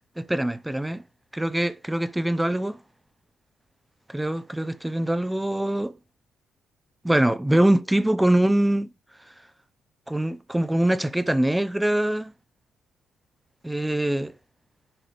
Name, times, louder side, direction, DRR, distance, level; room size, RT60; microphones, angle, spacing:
voice 1, 0.2-1.0 1.3-2.8 4.1-6.0 7.0-8.9 10.1-12.3 13.6-14.3, right 1 dB, 5° right, 0.6 m, -23 dB
11.0 x 5.4 x 3.4 m
cardioid pair, 90°, 0 cm